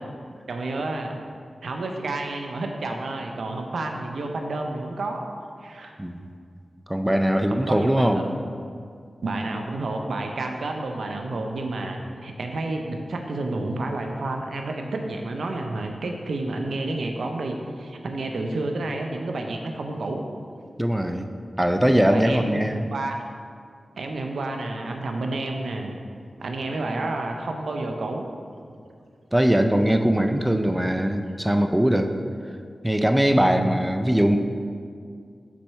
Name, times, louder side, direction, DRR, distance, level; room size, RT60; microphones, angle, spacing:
voice 1, 0.5-1.2 1.6-5.2 5.6-5.9 7.5-8.4 9.2-20.2 22.1-23.2 24.0-26.0 26.4-28.3 33.4-33.7, right 2 dB, 85° right, 3 dB, 0.5 m, -30 dB
voice 2, 6.0-6.3 6.9-8.3 20.8-21.3 21.6-22.9 29.3-32.1 32.8-34.4, equal, 10° right, 6 dB, 0.4 m, -21 dB
6.0 x 4.1 x 4.6 m, 2.2 s
cardioid pair, 55°, 0 cm